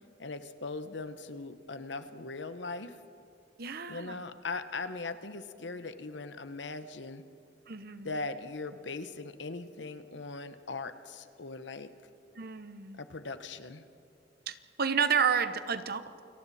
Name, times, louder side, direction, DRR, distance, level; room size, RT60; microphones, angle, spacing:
voice 1, 0.2-2.9 3.9-7.2 8.0-11.9 13.0-13.8, left 3 dB, 75° left, 10 dB, 1.1 m, -40 dB
voice 2, 3.6-4.2 7.7-8.2 12.4-13.0 14.5-16.2, right 7 dB, 60° right, 11 dB, 1.0 m, -31 dB
29.0 x 23.0 x 4.2 m, 2.4 s
head